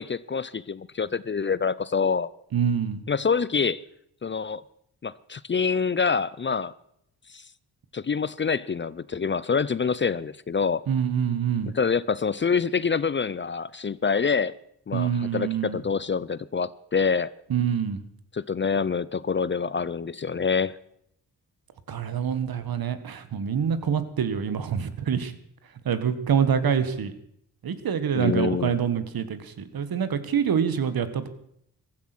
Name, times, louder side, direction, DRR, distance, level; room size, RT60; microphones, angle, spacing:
voice 1, 0.0-2.3 3.1-3.8 4.2-4.6 5.0-6.7 7.3-7.4 7.9-10.8 11.7-14.5 14.9-17.3 18.3-20.8 28.2-28.7, left 5 dB, 30° left, 0.5 m, -26 dB
voice 2, 2.5-3.0 10.9-11.8 14.9-15.8 17.5-18.0 21.9-25.3 25.8-27.1 27.6-31.3, right 7 dB, 65° right, 1.6 m, -26 dB
15.5 x 13.5 x 6.1 m
cardioid pair, 70°, 38 cm